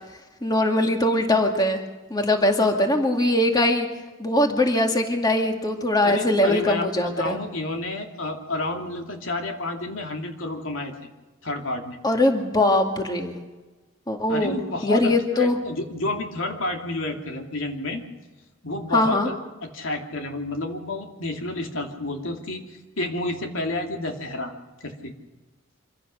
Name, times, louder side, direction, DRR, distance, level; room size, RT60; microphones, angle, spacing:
voice 1, 0.4-1.8 2.1-3.9 4.2-7.4 12.0-13.4 14.1-15.6 18.9-19.3, left 1 dB, 20° left, 3 dB, 2.2 m, -21 dB
voice 2, 6.0-11.1 11.4-12.0 14.3-18.0 18.6-19.3 19.6-24.5 24.8-25.1, left 2 dB, 85° left, 3 dB, 2.7 m, -30 dB
25.5 x 16.0 x 6.5 m, 1.2 s
head